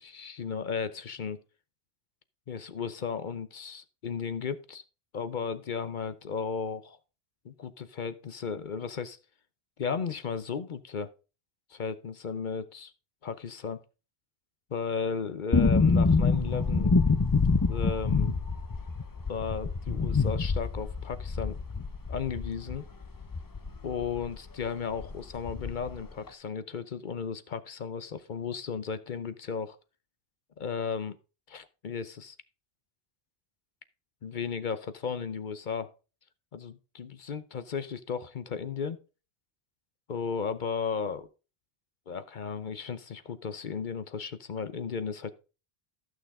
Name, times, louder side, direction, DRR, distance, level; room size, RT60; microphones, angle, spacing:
voice 1, 0.0-1.4 2.5-4.8 5.1-7.0 7.4-9.2 9.8-11.1 11.7-12.9 13.2-13.8 14.7-16.9 17.7-18.4 19.3-21.6 22.1-22.8 23.8-29.8 30.6-31.2 31.5-32.4 34.2-35.9 36.5-39.0 40.1-41.3 42.1-45.4, left 6 dB, 55° left, 0.8 m, -35 dB
sound 1, 15.5-24.4 24.6-24.7 25.0-26.0 26.3-26.4, left 4 dB, 25° left, 0.6 m, -26 dB
13.5 x 6.4 x 3.6 m
omnidirectional pair, 1.0 m